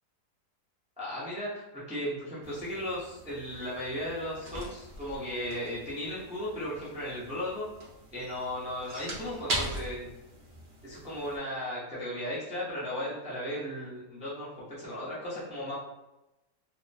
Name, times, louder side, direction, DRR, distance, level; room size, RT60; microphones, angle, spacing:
voice 1, 1.0-7.7 8.1-10.1 10.8-15.7, left 1 dB, 10° right, -10 dB, 0.3 m, -36 dB
sound 1, 2.4-11.4, right 1 dB, 50° right, 0.6 m, -41 dB
2.7 x 2.1 x 2.6 m, 0.98 s
omnidirectional pair, 1.7 m